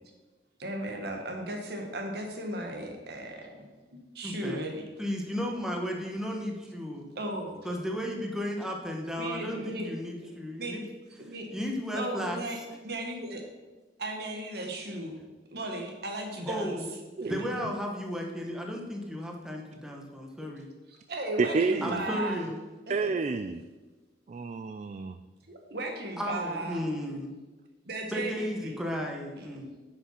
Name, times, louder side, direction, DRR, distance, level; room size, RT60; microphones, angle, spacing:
voice 1, 0.6-4.9 7.2-7.6 9.2-9.9 10.2-10.3 10.6-10.8 11.2-11.5 11.9-12.6 12.8-13.4 14.0-15.2 15.5-16.8 17.2-17.3 20.9-22.4 23.0-23.1 25.5-26.8 27.9-28.7 29.4-29.6, right 1 dB, 65° right, 2 dB, 1.7 m, -36 dB
voice 2, 4.2-4.6 5.0-7.1 7.6-10.8 11.3-12.4 16.5-16.9 17.3-20.7 21.8-22.6 26.2-27.3 28.1-29.7, equal, 5° right, 0 dB, 1.3 m, -34 dB
voice 3, 21.4-22.1 22.9-23.6 24.3-25.2, right 4 dB, 40° right, 10 dB, 0.4 m, -29 dB
9.9 x 6.0 x 5.7 m, 1.2 s
head